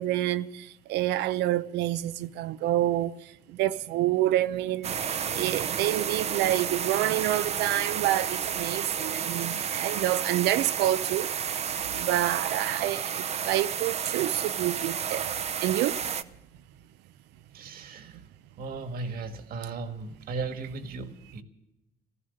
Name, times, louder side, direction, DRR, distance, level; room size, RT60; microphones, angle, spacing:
voice 1, 0.0-3.1 3.5-11.3 11.9-16.0, right 14 dB, 85° right, 0.6 m, -28 dB
sound 1, 4.8-16.2, right 8 dB, 40° right, 0.6 m, -31 dB
voice 2, 17.5-18.2 18.6-21.4, right 4 dB, 60° right, 1.7 m, -36 dB
16.0 x 14.0 x 6.6 m
cardioid pair, 110°, 17 cm